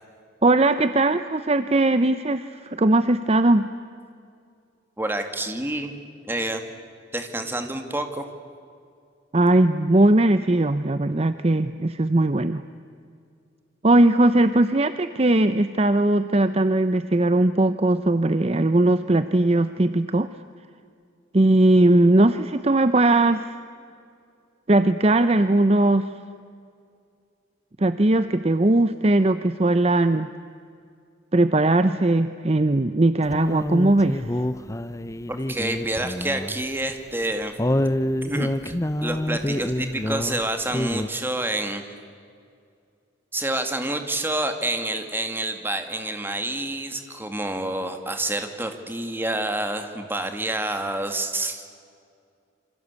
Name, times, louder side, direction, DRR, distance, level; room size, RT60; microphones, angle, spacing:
voice 1, 0.4-3.7 9.3-12.6 13.8-20.3 21.3-23.5 24.7-26.1 27.8-30.3 31.3-34.2, right 2 dB, 35° right, 11 dB, 0.7 m, -19 dB
voice 2, 5.0-5.9 6.3-6.6 7.1-8.3 35.3-37.5 38.2-38.7 39.0-41.8 43.3-51.6, right 1 dB, 10° right, 6 dB, 2.3 m, -28 dB
sound 1, 33.3-36.6 36.9-37.0 37.6-40.4 40.7-41.1, left 1 dB, 15° left, 0.7 m, -27 dB
28.0 x 25.5 x 8.3 m, 2.3 s
head